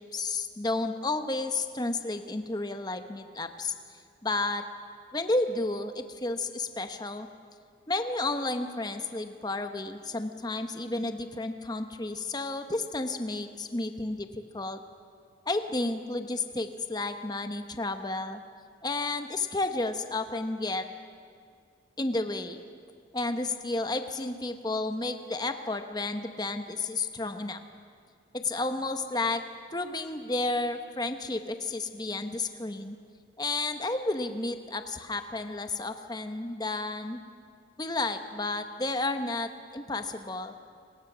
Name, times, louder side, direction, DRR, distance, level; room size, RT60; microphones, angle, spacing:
voice 1, 0.1-3.7 4.2-4.6 5.1-7.3 7.9-14.8 15.5-18.4 18.8-20.9 22.0-22.6 23.1-27.6 28.3-29.4 29.7-33.0 33.4-37.2 37.8-40.5, left 2 dB, 20° left, 8 dB, 0.9 m, -32 dB
29.5 x 20.5 x 6.1 m, 2.2 s
head